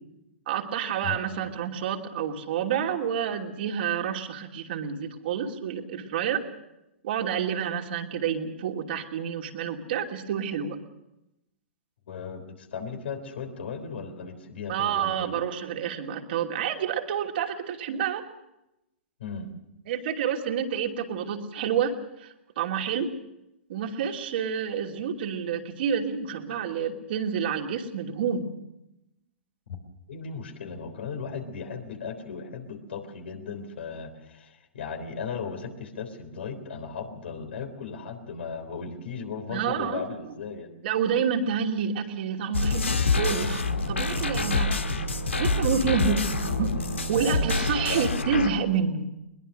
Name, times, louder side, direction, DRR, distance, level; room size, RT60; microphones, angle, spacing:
voice 1, 0.5-6.4 7.0-10.8 14.7-18.2 19.9-21.9 22.2-23.1 23.7-28.5 39.5-40.0 40.8-44.8 45.4-46.3 46.6-46.8 47.1-49.1, right 7 dB, 55° right, 2 dB, 2.9 m, -28 dB
voice 2, 12.1-15.5 19.2-19.5 30.1-40.7 46.0-46.2 47.1-47.4 47.7-48.1, left 5 dB, 65° left, 6 dB, 3.6 m, -36 dB
sound 1, 42.5-48.5, left 3 dB, 85° left, 1.7 m, -26 dB
22.0 x 21.0 x 6.6 m, 0.89 s
figure-of-eight pair, 115°, 7 cm